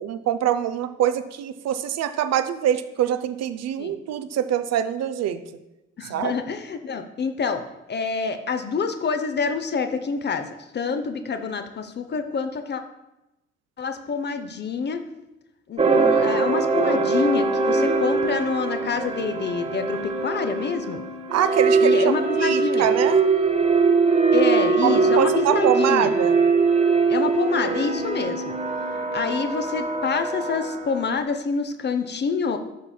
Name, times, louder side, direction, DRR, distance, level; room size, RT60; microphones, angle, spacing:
voice 1, 0.0-5.4 6.1-6.4 21.3-23.2 24.8-26.3, right 10 dB, 45° right, 10 dB, 0.5 m, -24 dB
voice 2, 6.0-7.6 7.9-12.8 13.8-15.0 15.7-21.0 21.8-22.9 24.3-26.1 27.1-28.6 29.1-32.6, left 5 dB, 30° left, 8 dB, 0.6 m, -27 dB
sound 1, 15.8-31.1, right 4 dB, 20° right, 0.8 m, -22 dB
11.0 x 5.5 x 2.3 m, 0.94 s
figure-of-eight pair, 40°, 36 cm